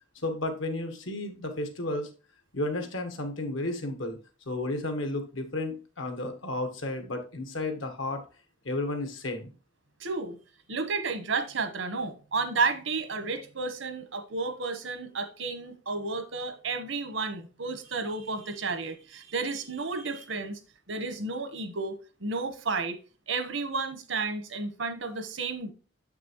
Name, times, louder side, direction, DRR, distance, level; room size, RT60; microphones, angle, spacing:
voice 1, 0.2-2.1 2.5-4.2 4.5-8.2 8.6-9.5, left 2 dB, 80° left, 1.3 m, -32 dB
voice 2, 10.0-10.4 10.7-20.6 20.9-21.9 22.2-23.0 23.3-25.7, right 4 dB, 80° right, 1.1 m, -32 dB
7.0 x 6.0 x 3.0 m
head